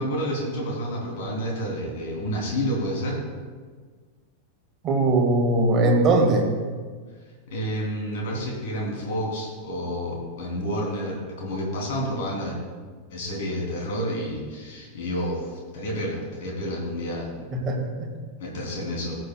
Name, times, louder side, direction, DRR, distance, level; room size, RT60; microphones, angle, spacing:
voice 1, 0.0-3.2 7.5-12.6 13.1-17.3 18.4-19.2, equal, 55° left, -2 dB, 3.1 m, -29 dB
voice 2, 4.8-6.5 17.6-18.1, right 2 dB, 30° right, 1 dB, 1.8 m, -20 dB
18.0 x 7.7 x 2.3 m, 1.5 s
figure-of-eight pair, 90°, 0 cm